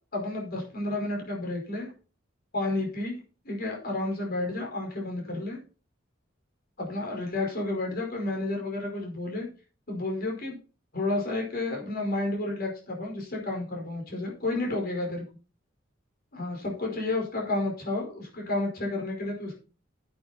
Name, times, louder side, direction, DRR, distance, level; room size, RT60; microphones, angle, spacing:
voice 1, 0.1-1.9 2.5-3.2 3.4-5.6 6.8-9.5 9.9-10.6 10.9-15.2 16.3-19.6, left 2 dB, 50° left, 0 dB, 5.0 m, -31 dB
10.5 x 8.7 x 4.3 m, 0.36 s
head